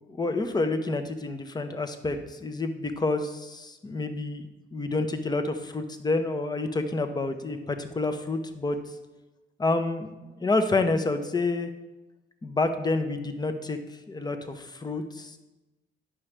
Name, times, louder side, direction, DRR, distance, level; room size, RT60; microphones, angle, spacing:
voice 1, 0.1-4.5 4.7-8.8 9.6-11.7 12.4-13.8 14.1-15.4, left 3 dB, 20° left, 7 dB, 0.8 m, -28 dB
9.6 x 6.1 x 3.3 m, 1.1 s
cardioid pair, 90°, 20 cm